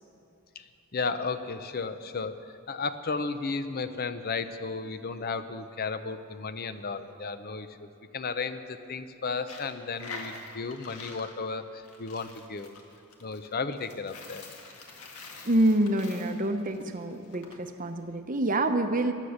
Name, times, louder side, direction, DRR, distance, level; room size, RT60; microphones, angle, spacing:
voice 1, 0.9-2.4 2.7-7.9 8.1-12.7 13.2-14.4, left 4 dB, 45° left, 11 dB, 0.6 m, -34 dB
Coin (dropping), 9.4-17.6, left 3 dB, 85° left, 1.8 m, -46 dB
voice 2, 15.4-19.1, right 1 dB, 40° right, 7 dB, 0.8 m, -26 dB
16.5 x 11.5 x 6.5 m, 2.7 s
head